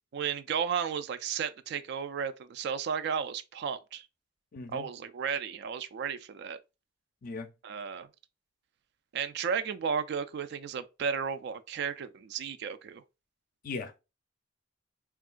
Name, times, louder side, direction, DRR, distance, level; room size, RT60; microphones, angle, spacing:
voice 1, 0.1-4.1 4.7-6.6 7.6-8.1 9.1-13.0, right 7 dB, 60° right, 0.3 m, -33 dB
voice 2, 4.5-4.9 7.2-7.5 13.6-14.0, left 3 dB, 45° left, 0.4 m, -38 dB
3.6 x 2.3 x 2.4 m
head